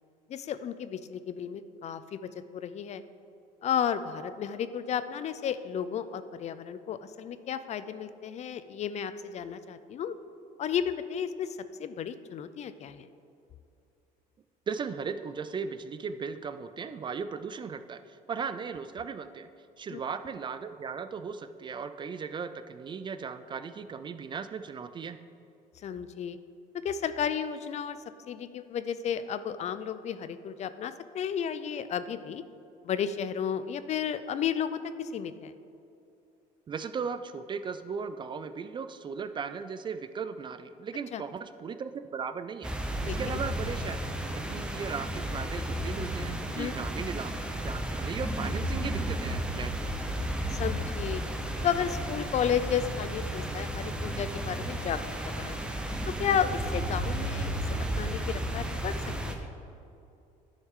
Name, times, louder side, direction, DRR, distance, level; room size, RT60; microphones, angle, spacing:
voice 1, 0.3-3.0 3.6-10.1 10.6-11.5 11.8-13.1 19.9-20.0 25.8-26.4 26.8-28.0 28.3-32.4 32.8-35.5 41.1-41.2 43.1-43.2 46.5-46.7 50.5-51.2 51.6-55.6 56.2-57.5 57.9-58.9 59.3-59.5, left 8 dB, 45° left, 12 dB, 0.4 m, -33 dB
voice 2, 14.7-19.5 19.8-25.2 36.7-44.0 44.5-47.3 47.6-50.0, right 6 dB, 30° right, 10 dB, 0.3 m, -37 dB
sound 1, 42.6-59.3, right 1 dB, 5° right, 0.8 m, -33 dB
10.5 x 6.4 x 3.7 m, 2.6 s
cardioid pair, 115°, 16 cm